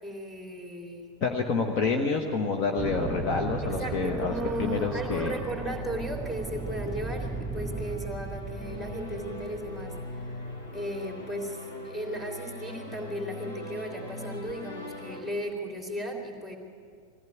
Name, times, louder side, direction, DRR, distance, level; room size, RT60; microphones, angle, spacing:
voice 1, 0.0-1.1 3.6-10.3 10.7-16.6, equal, 10° left, 1 dB, 3.3 m, -36 dB
voice 2, 1.2-5.4, left 4 dB, 40° left, 3 dB, 1.4 m, -28 dB
sound 1, 1.9-15.2, left 1 dB, 65° left, 4.3 m, -42 dB
sound 2, 2.8-10.8, right 3 dB, 10° right, 2.7 m, -37 dB
21.0 x 15.5 x 9.4 m, 2.2 s
figure-of-eight pair, 90°, 0 cm